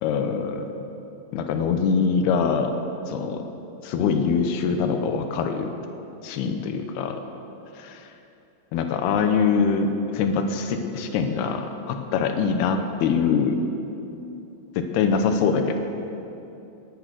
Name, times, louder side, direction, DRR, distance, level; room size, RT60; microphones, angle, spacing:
voice 1, 0.0-0.7 1.3-2.7 3.1-3.4 3.8-5.7 6.2-7.2 7.8-8.1 8.7-13.6 14.8-15.8, left 5 dB, 80° left, 6 dB, 2.5 m, -23 dB
19.0 x 9.1 x 6.3 m, 2.9 s
omnidirectional pair, 5.4 m